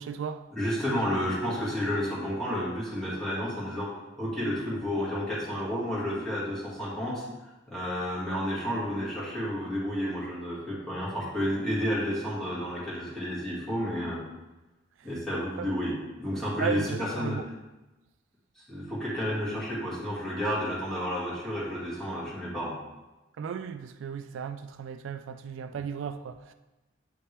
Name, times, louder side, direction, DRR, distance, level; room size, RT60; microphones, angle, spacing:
voice 1, 0.0-0.4 15.6-15.7 16.6-17.4 23.4-26.5, right 6 dB, 70° right, 9 dB, 0.3 m, -35 dB
voice 2, 0.5-3.9 4.2-7.2 7.7-14.2 15.0-17.4 18.6-22.8, equal, ahead, -9 dB, 2.2 m, -31 dB
8.2 x 4.2 x 3.4 m, 1.1 s
head